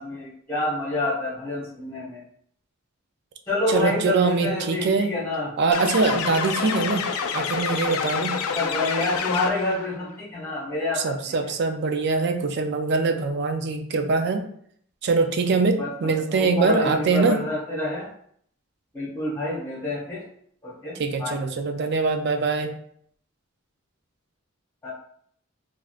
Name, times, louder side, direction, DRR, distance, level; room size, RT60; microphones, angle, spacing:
voice 1, 0.0-2.2 3.5-5.5 6.6-6.8 8.5-11.1 15.8-18.1 18.9-20.2 20.6-21.4 24.8-24.9, left 2 dB, 10° left, -8 dB, 1.3 m, -28 dB
voice 2, 3.7-5.1 5.6-7.1 7.3-8.4 11.0-14.4 15.0-17.4 21.0-22.7, right 4 dB, 55° right, 6 dB, 0.3 m, -23 dB
sound 1, 5.7-9.9, left 6 dB, 90° left, 0.3 m, -27 dB
3.4 x 2.4 x 2.3 m, 0.64 s
head